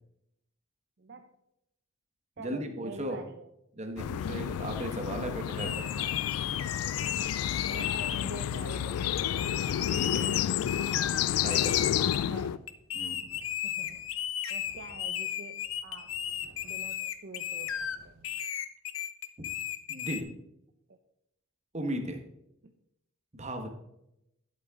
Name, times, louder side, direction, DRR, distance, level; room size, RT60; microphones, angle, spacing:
voice 1, 1.0-1.3 2.4-3.5 5.6-6.0 7.7-9.6 11.5-12.6 13.6-14.0 14.5-16.1 16.6-18.4 20.9-21.0 22.6-22.7, right 3 dB, 50° right, 6 dB, 0.6 m, -46 dB
voice 2, 2.4-3.2 3.8-6.1 9.9-10.5 11.4-12.1 12.9-13.3 19.9-20.3 21.7-22.2 23.4-23.7, right 1 dB, 30° right, 5 dB, 1.2 m, -36 dB
sound 1, 4.0-12.6, left 10 dB, 90° left, 0.3 m, -30 dB
sound 2, 5.6-8.2 9.2-11.2 11.5-12.2 12.7-18.0 18.2-20.2, left 10 dB, 65° left, 0.7 m, -35 dB
sound 3, 8.4-18.3, right 1 dB, 85° right, 2.9 m, -59 dB
11.5 x 7.6 x 3.6 m, 0.82 s
head